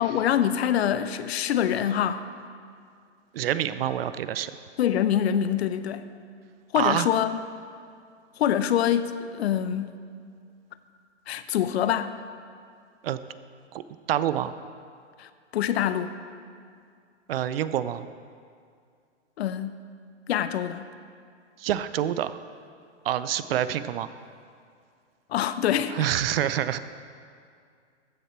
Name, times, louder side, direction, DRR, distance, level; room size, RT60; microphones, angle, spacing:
voice 1, 0.0-2.2 4.8-6.0 6.7-7.4 8.4-10.0 11.3-12.1 15.2-16.1 19.4-19.8 20.3-20.9 25.3-26.0, left 10 dB, 60° left, 12 dB, 0.7 m, -25 dB
voice 2, 3.3-4.5 6.7-7.1 13.0-13.2 13.7-13.8 14.1-14.5 17.3-18.1 21.6-22.4 23.1-24.1 25.9-26.8, right 11 dB, 55° right, 14 dB, 0.5 m, -26 dB
15.0 x 6.8 x 4.4 m, 2.3 s
hypercardioid pair, 145°, 36 cm